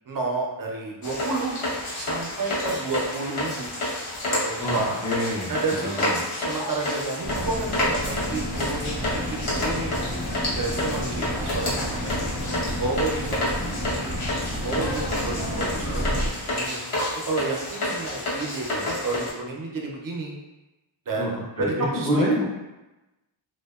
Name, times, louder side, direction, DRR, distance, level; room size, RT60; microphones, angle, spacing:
voice 1, 0.1-1.5 2.0-3.7 4.3-5.0 5.5-6.1 6.4-10.0 10.6-12.3 12.8-14.2 14.6-16.8 17.3-20.3 21.1-22.2, right 3 dB, 45° right, -1 dB, 0.5 m, -31 dB
sound 1, 1.0-19.3, left 1 dB, 90° left, 0.8 m, -30 dB
voice 2, 4.6-6.2 21.2-22.4, equal, 10° left, -7 dB, 0.4 m, -27 dB
sound 2, 7.2-16.3, equal, 55° left, 0.7 m, -30 dB
2.7 x 2.1 x 2.2 m, 1.0 s
wide cardioid pair, 85°, 48 cm